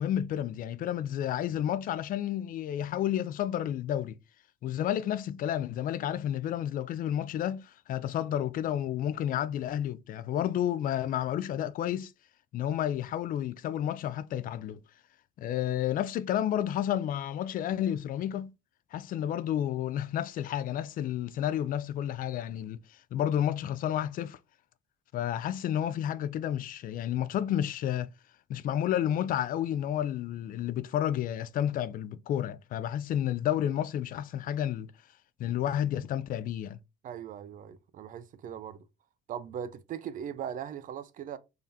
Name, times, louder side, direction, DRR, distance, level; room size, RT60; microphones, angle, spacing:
voice 1, 0.0-4.2 4.6-12.1 12.5-14.8 15.4-18.5 18.9-24.4 25.1-28.1 28.5-34.9 35.4-36.8, left 10 dB, 55° left, 0.4 m, -31 dB
voice 2, 37.0-38.8 39.3-41.4, right 9 dB, 55° right, 0.5 m, -39 dB
3.7 x 3.3 x 2.7 m
cardioid pair, 110°, 17 cm